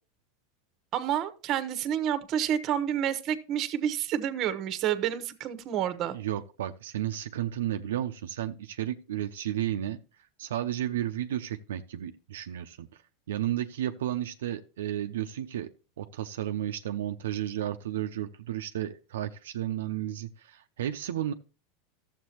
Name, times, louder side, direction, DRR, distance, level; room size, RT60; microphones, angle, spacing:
voice 1, 0.9-6.2, right 10 dB, 40° right, 12 dB, 1.0 m, -29 dB
voice 2, 6.1-10.0 10.4-13.0 13.3-15.7 16.0-21.3, right 12 dB, 90° right, 6 dB, 0.5 m, -33 dB
12.5 x 7.3 x 2.9 m, 0.35 s
supercardioid pair, 120°, 0 cm